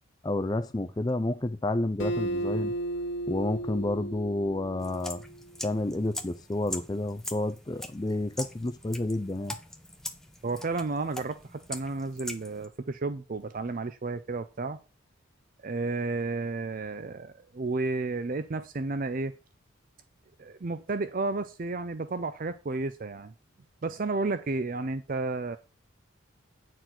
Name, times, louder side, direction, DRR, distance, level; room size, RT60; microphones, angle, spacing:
voice 1, 0.2-2.7 3.3-5.2 5.6-9.5, left 2 dB, 20° left, 0.5 m, -30 dB
Acoustic guitar, 2.0-5.4, right 1 dB, 70° left, 1.9 m, -34 dB
sound 1, 4.8-12.7, left 1 dB, ahead, 0.8 m, -42 dB
voice 2, 10.4-14.8 15.6-19.3 20.4-23.3 23.8-25.6, right 3 dB, 40° right, 0.5 m, -32 dB
9.6 x 4.5 x 5.8 m
head